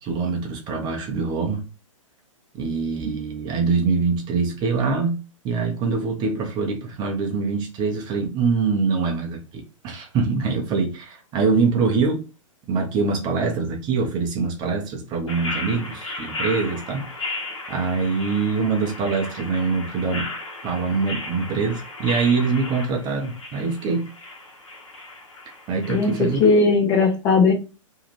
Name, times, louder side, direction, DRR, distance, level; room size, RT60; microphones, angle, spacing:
voice 1, 0.0-1.6 2.5-5.2 5.4-12.2 12.7-17.4 17.7-20.3 20.6-24.1 25.7-26.4, right 4 dB, 25° right, 0.7 m, -24 dB
sound 1, 15.3-26.6, left 2 dB, 65° left, 1.1 m, -35 dB
voice 2, 26.4-27.5, left 4 dB, 25° left, 0.6 m, -17 dB
2.7 x 2.4 x 3.0 m
figure-of-eight pair, 115°, 17 cm